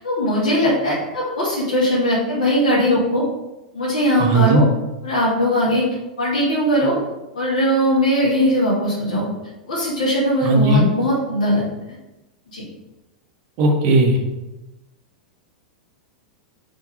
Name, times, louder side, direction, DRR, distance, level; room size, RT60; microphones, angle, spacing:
voice 1, 0.0-3.2 3.7-4.6 5.0-5.8 6.2-7.0 7.3-9.3 9.7-11.7 12.5-12.6, equal, 60° left, -7 dB, 2.5 m, -19 dB
voice 2, 4.2-4.6 10.4-10.9 13.6-14.2, right 2 dB, 45° right, 1 dB, 1.6 m, -16 dB
6.2 x 4.5 x 5.0 m, 1.0 s
figure-of-eight pair, 95°, 4 cm